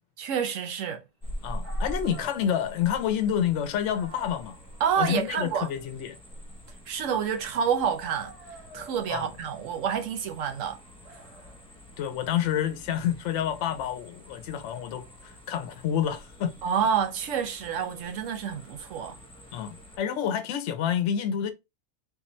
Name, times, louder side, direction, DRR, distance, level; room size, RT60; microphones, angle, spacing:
voice 1, 0.2-1.0 4.8-5.7 6.9-8.4 8.7-10.8 16.6-19.2, right 7 dB, 90° right, 1.0 m, -28 dB
sound 1, 1.2-20.0, equal, 5° left, 0.6 m, -44 dB
voice 2, 1.4-4.6 5.0-6.2 9.1-9.3 12.0-16.6 19.5-21.5, left 9 dB, 75° left, 0.9 m, -28 dB
Dog, 1.6-7.6 8.0-14.8, right 2 dB, 40° right, 1.3 m, -52 dB
3.6 x 2.8 x 3.0 m
omnidirectional pair, 1.3 m